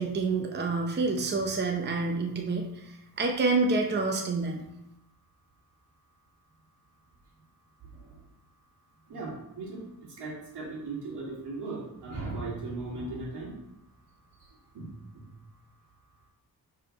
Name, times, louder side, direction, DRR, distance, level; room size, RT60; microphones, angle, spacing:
voice 1, 0.0-4.6, right 3 dB, 25° right, 2 dB, 0.7 m, -28 dB
voice 2, 9.1-9.8 10.2-13.5 14.7-14.9 15.2-15.3, right 3 dB, 90° right, -4 dB, 2.6 m, -37 dB
4.8 x 4.8 x 5.2 m, 0.83 s
wide cardioid pair, 135°, 39 cm